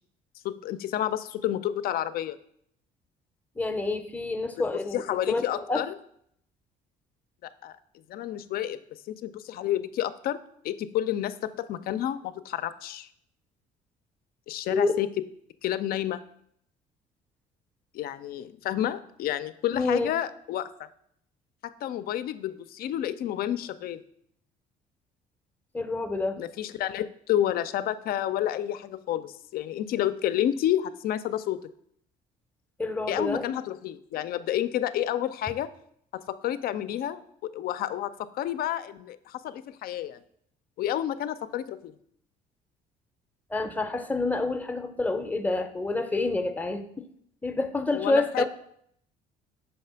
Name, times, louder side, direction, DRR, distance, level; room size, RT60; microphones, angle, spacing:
voice 1, 0.4-2.4 4.6-4.7 4.9-6.0 7.4-7.7 8.1-8.8 9.1-10.4 10.6-13.1 14.5-15.1 15.6-16.2 17.9-20.9 21.6-24.0 26.4-31.6 33.1-35.7 36.1-40.2 40.8-42.0 47.9-48.5, left 11 dB, 60° left, 14 dB, 0.4 m, -30 dB
voice 2, 3.6-5.8 14.7-14.9 19.7-20.1 25.7-26.4 32.8-33.5 43.5-47.0 47.4-48.5, left 3 dB, 10° left, 8 dB, 0.6 m, -28 dB
5.5 x 3.3 x 5.6 m, 0.68 s
cardioid pair, 110°, 17 cm